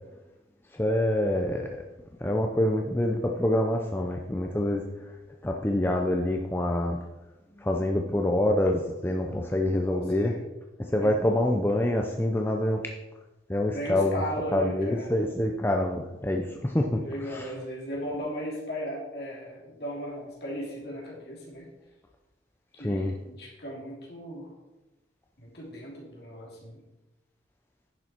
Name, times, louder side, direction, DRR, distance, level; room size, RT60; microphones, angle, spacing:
voice 1, 0.7-1.7 2.2-5.1 5.4-7.0 7.6-10.3 10.8-12.9 13.5-14.2 14.5-17.5 22.8-23.1, left 1 dB, 10° left, 2 dB, 0.5 m, -26 dB
voice 2, 9.7-10.4 11.0-11.2 13.7-15.1 16.5-16.6 17.0-21.7 22.8-24.5 25.4-26.8, equal, 60° left, -3 dB, 3.1 m, -37 dB
10.5 x 6.8 x 4.4 m, 1.0 s
head